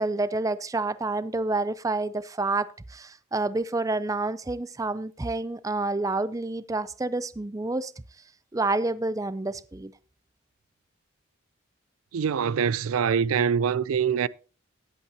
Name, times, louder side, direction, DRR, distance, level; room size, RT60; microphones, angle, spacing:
voice 1, 0.0-7.9 8.5-9.9, right 2 dB, 15° right, 0.4 m, -28 dB
voice 2, 12.1-14.3, right 7 dB, 85° right, 0.4 m, -24 dB
19.0 x 8.3 x 2.9 m
head